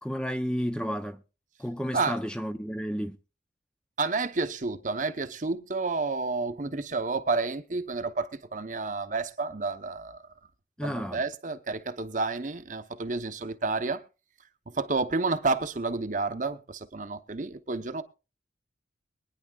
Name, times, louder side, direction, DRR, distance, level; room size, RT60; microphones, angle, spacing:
voice 1, 0.0-1.2 1.6-3.2 10.8-11.2, equal, 5° left, 0.6 m, -31 dB
voice 2, 4.0-10.2 10.8-14.0 14.7-18.0, right 3 dB, 45° right, 0.9 m, -30 dB
22.5 x 9.9 x 2.4 m
head